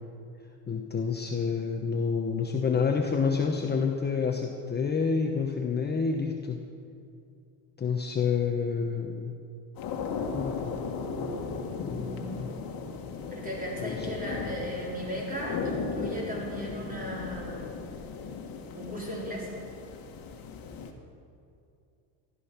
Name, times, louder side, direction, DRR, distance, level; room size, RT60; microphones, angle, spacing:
voice 1, 0.7-6.6 7.8-9.3 10.3-10.7 11.8-12.5 13.8-14.2, left 5 dB, 20° left, 3 dB, 1.0 m, -28 dB
sound 1, 9.8-20.9, left 5 dB, 50° left, 1.8 m, -36 dB
voice 2, 11.9-12.6 13.3-17.8 18.7-19.5, equal, 20° right, -3 dB, 4.4 m, -36 dB
15.5 x 12.5 x 5.9 m, 2.5 s
cardioid pair, 115°, 45 cm